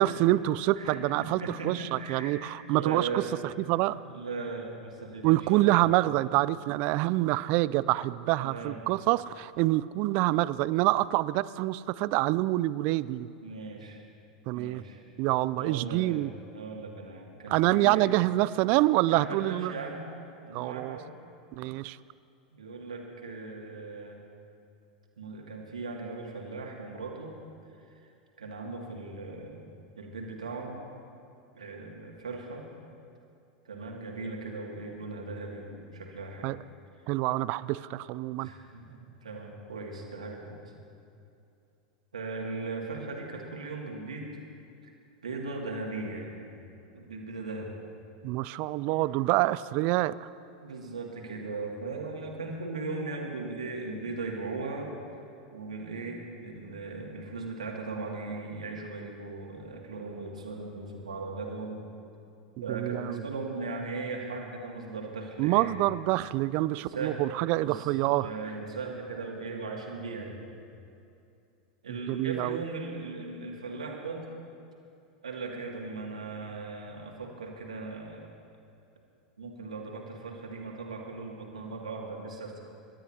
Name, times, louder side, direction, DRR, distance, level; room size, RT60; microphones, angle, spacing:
voice 1, 0.0-3.2 3.7-4.0 5.2-13.3 14.5-14.8 15.2-16.3 17.5-19.7 20.5-21.0 21.5-22.0 36.4-36.6 37.1-38.5 48.2-50.2 62.7-63.2 65.4-68.3 72.1-72.6, right 17 dB, 50° right, 18 dB, 0.4 m, -26 dB
voice 2, 0.8-3.3 4.0-5.9 8.4-8.8 13.4-14.0 14.5-15.0 15.6-18.1 19.1-20.0 20.4-21.1 22.5-24.2 25.2-27.3 27.8-28.1 28.4-29.7 30.0-30.8 31.5-32.6 33.6-36.5 38.4-40.6 42.1-44.4 44.8-44.9 45.2-46.5 46.9-47.7 50.6-54.9 55.5-61.8 62.6-65.7 66.9-67.2 67.6-67.9 68.2-70.4 71.8-74.3 75.2-78.3 79.4-82.6, right 3 dB, 80° right, -1 dB, 2.2 m, -38 dB
27.5 x 12.5 x 2.8 m, 2.6 s
figure-of-eight pair, 90°, 4 cm